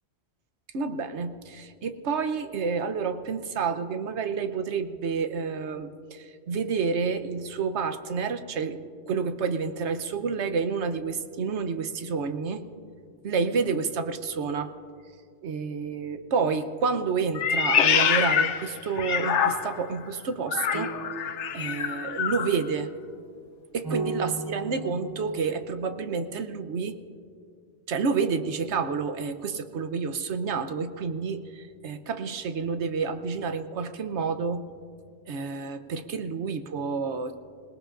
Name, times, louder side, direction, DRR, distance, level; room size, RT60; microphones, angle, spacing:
voice 1, 0.7-12.6 13.2-14.7 15.4-20.9 21.5-22.9 23.7-27.0 27.9-34.7 35.3-37.4, right 5 dB, 80° right, 9 dB, 1.1 m, -29 dB
Meow, 17.3-19.9 20.5-22.5, left 7 dB, 90° left, 1.1 m, -25 dB
sound 1, 20.7-25.7, right 3 dB, 20° right, 1.3 m, -36 dB
26.5 x 18.5 x 2.5 m, 2.2 s
omnidirectional pair, 1.1 m